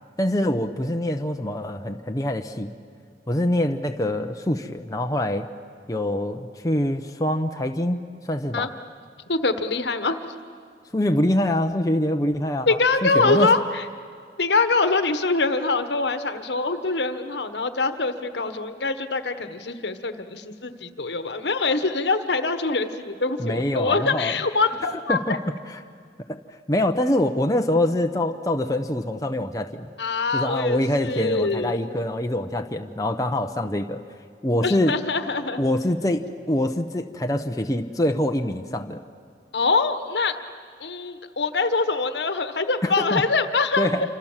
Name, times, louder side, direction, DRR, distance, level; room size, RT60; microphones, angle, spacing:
voice 1, 0.2-2.7 3.3-5.5 5.9-8.7 10.9-13.5 23.4-24.4 25.1-25.4 26.3-26.4 26.7-29.9 30.3-34.0 34.4-34.9 35.6-39.0 42.8-43.2 43.8-44.1, left 1 dB, 20° left, 4 dB, 0.9 m, -24 dB
voice 2, 9.3-10.2 12.7-13.8 14.4-25.4 30.0-32.0 34.6-35.6 39.5-40.3 40.8-43.9, left 3 dB, 75° left, 9 dB, 1.4 m, -24 dB
27.5 x 26.0 x 7.4 m, 2.2 s
head